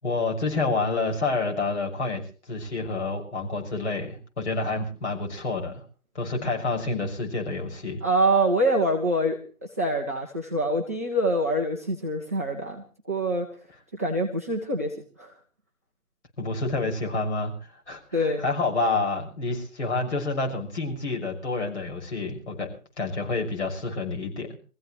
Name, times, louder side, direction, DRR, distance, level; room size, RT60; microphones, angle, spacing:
voice 1, 0.0-5.8 6.1-8.0 16.4-22.7 23.0-24.6, left 3 dB, 50° left, 1 dB, 6.5 m, -28 dB
voice 2, 8.0-13.5 13.9-15.3 18.1-18.4, right 1 dB, 10° right, -4 dB, 0.8 m, -25 dB
25.5 x 15.5 x 3.2 m, 0.39 s
figure-of-eight pair, 150°, 45 cm